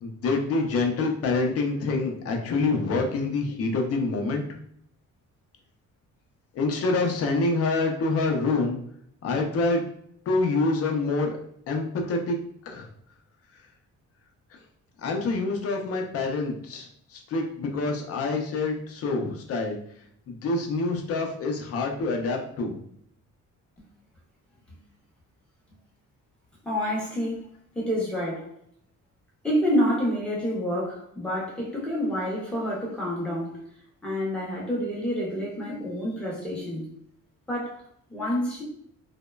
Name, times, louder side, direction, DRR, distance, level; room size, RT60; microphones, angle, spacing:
voice 1, 0.0-4.4 6.6-8.8 9.2-9.8 10.3-11.4 11.7-12.4 12.7-12.9 15.0-16.9 17.1-19.8 20.3-22.8, left 3 dB, 50° left, 2 dB, 0.5 m, -26 dB
voice 2, 26.6-27.4 27.7-28.5 29.4-33.6 34.0-36.9 37.5-37.8 38.1-38.6, equal, 5° left, -4 dB, 0.5 m, -28 dB
2.9 x 2.1 x 2.2 m, 0.67 s
cardioid pair, 165°, 32 cm